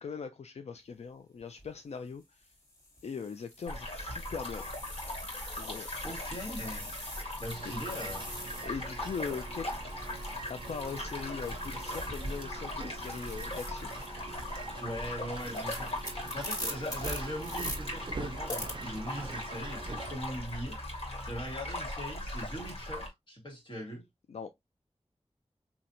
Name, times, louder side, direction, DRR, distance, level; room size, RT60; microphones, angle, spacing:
voice 1, 0.0-2.5 3.0-4.6 5.6-5.9 8.6-9.7 10.5-13.9 24.3-24.5, left 5 dB, 85° left, 0.4 m, -40 dB
sound 1, 1.4-1.7 2.4-12.6 12.8-17.8 18.5-18.7, left 1 dB, 35° left, 1.9 m, -45 dB
sound 2, 3.7-23.1, left 1 dB, 70° left, 1.8 m, -39 dB
voice 2, 6.0-7.0 7.4-8.3 14.8-24.0, equal, 50° left, 1.9 m, -41 dB
sound 3, 7.4-20.1, right 4 dB, 50° right, 0.5 m, -44 dB
4.2 x 2.8 x 2.6 m
wide cardioid pair, 85°, 11 cm